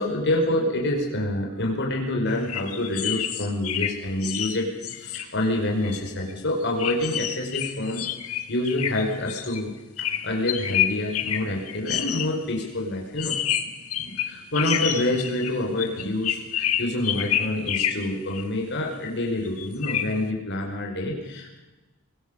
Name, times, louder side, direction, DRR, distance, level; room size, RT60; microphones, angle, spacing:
voice 1, 0.0-8.0 8.5-13.4 14.0-21.6, left 1 dB, 55° left, 0 dB, 5.2 m, -27 dB
sound 1, 2.3-5.2 5.8-6.0 6.3-6.4 6.8-9.6 10.0-12.3 13.2-18.4 19.4-20.1, left 10 dB, 80° left, 1.8 m, -28 dB
24.5 x 18.0 x 7.2 m, 1.1 s
head